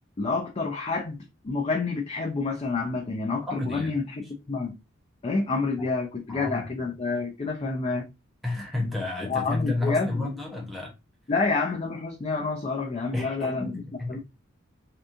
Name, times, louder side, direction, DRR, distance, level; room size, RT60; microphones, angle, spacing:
voice 1, 0.2-4.8 5.2-8.0 9.2-10.3 11.3-13.7 14.1-14.2, left 3 dB, 30° left, 0.4 m, -28 dB
voice 2, 3.5-4.0 5.8-5.9 6.3-6.9 8.4-10.9 13.1-14.2, left 2 dB, ahead, 0.8 m, -31 dB
2.9 x 2.3 x 2.5 m
head